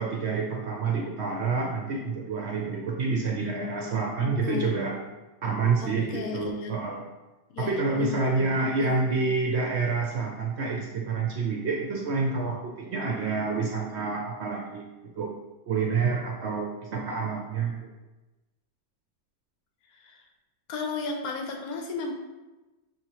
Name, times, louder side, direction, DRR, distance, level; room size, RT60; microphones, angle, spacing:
voice 1, 0.0-5.0 5.4-7.1 7.6-14.8 15.2-15.3 15.7-17.8, right 4 dB, 65° right, 0 dB, 0.7 m, -28 dB
voice 2, 3.4-5.1 5.8-6.8 7.5-9.4 19.9-20.2 20.7-22.1, left 4 dB, 80° left, 2 dB, 1.2 m, -35 dB
6.1 x 2.8 x 3.0 m, 1.1 s
omnidirectional pair, 1.5 m